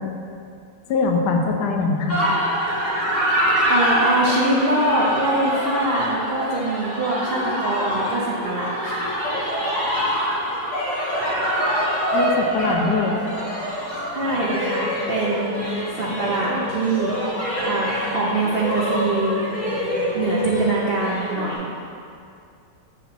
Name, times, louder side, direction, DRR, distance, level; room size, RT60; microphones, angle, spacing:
voice 1, 0.9-2.2 12.1-13.2, left 4 dB, 75° left, 2 dB, 1.2 m, -22 dB
sound 1, 2.1-21.5, equal, 25° left, 1.4 m, -25 dB
voice 2, 3.7-9.1 14.1-15.6 15.9-17.1 17.6-19.4 20.1-21.7, right 2 dB, 75° right, -5 dB, 0.5 m, -23 dB
6.9 x 2.8 x 5.8 m, 2.4 s
omnidirectional pair, 1.9 m